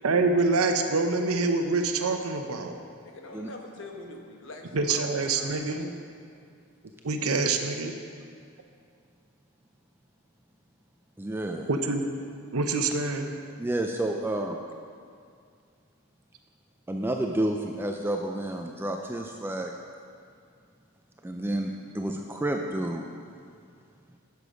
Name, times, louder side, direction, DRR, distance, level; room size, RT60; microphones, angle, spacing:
voice 1, 0.0-2.8 4.7-5.9 7.0-8.0 11.7-12.0 12.5-13.3, right 3 dB, 75° right, 5 dB, 0.8 m, -26 dB
voice 2, 3.0-5.9, left 2 dB, 55° left, 2 dB, 1.1 m, -44 dB
voice 3, 11.2-11.7 13.6-14.6 16.9-19.7 21.2-23.0, right 1 dB, 10° right, 3 dB, 0.3 m, -30 dB
11.0 x 6.8 x 5.1 m, 2.3 s
head